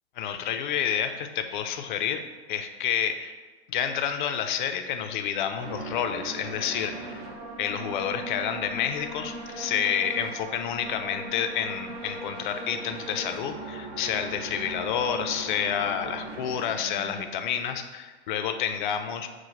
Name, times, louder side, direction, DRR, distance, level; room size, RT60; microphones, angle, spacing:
voice 1, 0.2-2.2 2.5-3.3 3.7-7.2 7.6-19.3, left 8 dB, 45° left, 7 dB, 0.4 m, -29 dB
sound 1, 5.6-17.3, right 2 dB, 25° right, 0.5 m, -39 dB
4.6 x 2.1 x 4.2 m, 1.3 s
hypercardioid pair, 130°, 34 cm